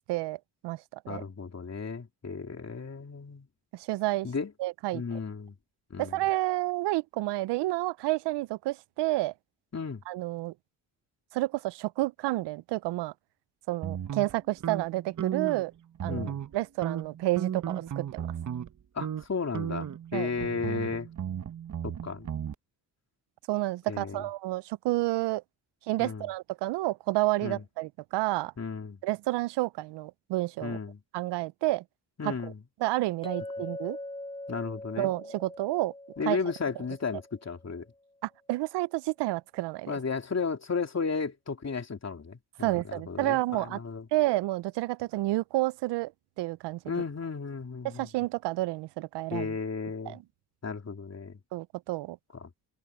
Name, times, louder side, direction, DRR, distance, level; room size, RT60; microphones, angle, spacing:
voice 1, 0.1-1.2 3.7-4.3 4.6-5.2 6.0-9.3 10.1-10.5 11.3-13.1 13.7-15.7 16.0-18.3 20.1-20.3 23.5-25.4 25.9-28.5 29.0-30.8 31.1-31.8 32.2-32.5 32.8-34.0 35.0-35.9 36.3-36.4 38.2-39.9 42.6-43.8 44.1-46.1 46.4-46.8 47.8-49.5 50.1-50.2 51.5-52.2, right 18 dB, 85° right, 0.5 m, -30 dB
voice 2, 1.1-3.5 4.2-4.5 4.9-5.5 5.9-6.2 9.7-10.0 16.1-16.4 18.9-21.1 21.8-22.3 23.9-24.3 26.0-26.3 27.4-27.6 28.6-29.0 30.6-31.0 32.2-32.6 34.5-35.1 36.2-37.9 39.9-44.0 46.8-48.1 49.3-50.2 50.6-51.4 52.3-52.5, left 5 dB, 40° left, 3.3 m, -34 dB
sound 1, 13.8-15.7 15.9-16.6 16.8-18.7 19.0-19.2 19.5-22.5, right 9 dB, 45° right, 1.0 m, -35 dB
Chink clink, 33.2-37.7, left 1 dB, 15° left, 7.0 m, -42 dB
supercardioid pair, 60°, 41 cm